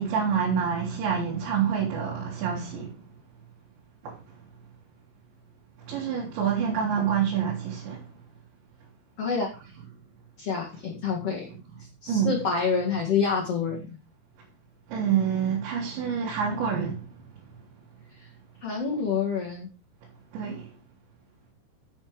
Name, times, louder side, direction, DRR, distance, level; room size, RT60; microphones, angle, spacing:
voice 1, 0.0-2.9 4.0-4.1 5.9-8.0 11.2-11.3 12.1-12.4 14.9-17.0 20.3-20.6, right 7 dB, 90° right, 5.0 m, -27 dB
voice 2, 9.2-9.5 10.4-11.5 12.0-13.8 18.6-19.7, left 5 dB, 45° left, 2.3 m, -27 dB
10.5 x 6.7 x 5.0 m
omnidirectional pair, 5.0 m